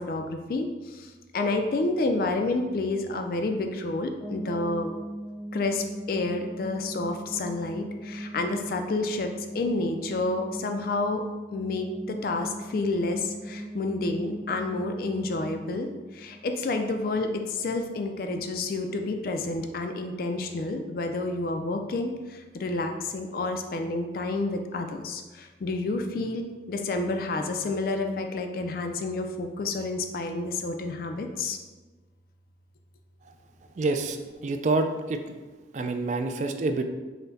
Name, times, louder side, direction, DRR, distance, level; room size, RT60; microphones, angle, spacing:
voice 1, 0.0-4.9 5.5-11.2 11.5-31.6, left 2 dB, 50° left, 5 dB, 0.3 m, -29 dB
sound 1, 4.2-17.1, right 1 dB, 5° left, 0.7 m, -39 dB
voice 2, 33.8-35.3 35.7-36.8, right 3 dB, 40° right, 6 dB, 0.3 m, -27 dB
5.6 x 2.1 x 4.0 m, 1.3 s
head